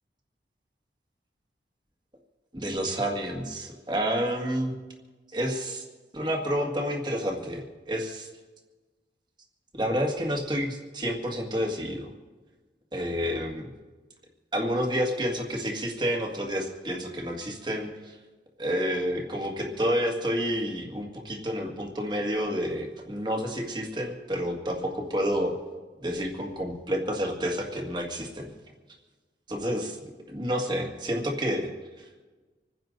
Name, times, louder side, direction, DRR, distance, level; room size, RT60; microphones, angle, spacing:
voice 1, 2.5-4.7 5.3-5.8 6.1-8.3 9.7-12.1 12.9-13.7 14.5-18.2 18.6-25.5 26.0-28.5 29.5-30.0 30.3-31.7 32.0-32.1, equal, 25° right, 1 dB, 2.0 m, -29 dB
27.0 x 10.5 x 4.0 m, 1.3 s
head